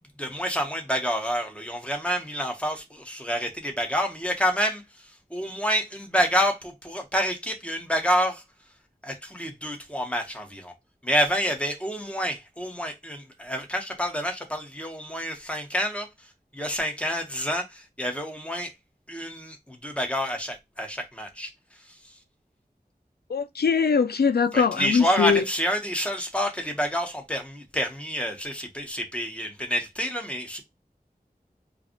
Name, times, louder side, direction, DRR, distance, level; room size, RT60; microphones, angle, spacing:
voice 1, 0.2-8.4 9.0-10.7 11.0-16.3 16.5-18.7 19.1-21.5 21.9-22.0 24.5-30.6, equal, 10° left, 1.3 m, -28 dB
voice 2, 23.3-25.4, left 5 dB, 90° left, 0.4 m, -22 dB
4.8 x 2.4 x 3.1 m
wide cardioid pair, 40°, 16 cm